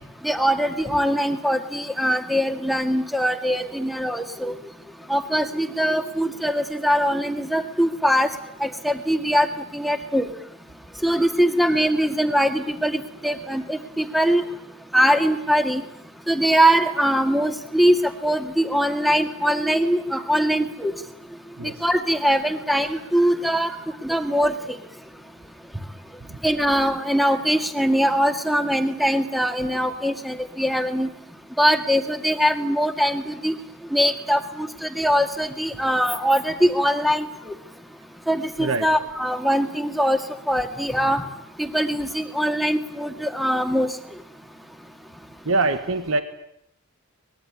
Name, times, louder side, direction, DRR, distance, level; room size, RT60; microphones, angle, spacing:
voice 1, 0.2-4.5 5.1-8.3 8.6-9.5 9.7-10.3 11.0-14.4 14.9-15.8 16.3-18.0 18.2-20.9 21.8-23.7 24.0-24.5 26.4-31.1 31.6-33.5 33.9-37.5 38.3-40.2 40.5-41.2 41.6-43.9, equal, ahead, 7 dB, 2.0 m, -22 dB
voice 2, 45.4-46.2, right 3 dB, 65° right, 9 dB, 1.6 m, -23 dB
24.5 x 21.0 x 9.9 m, 0.75 s
head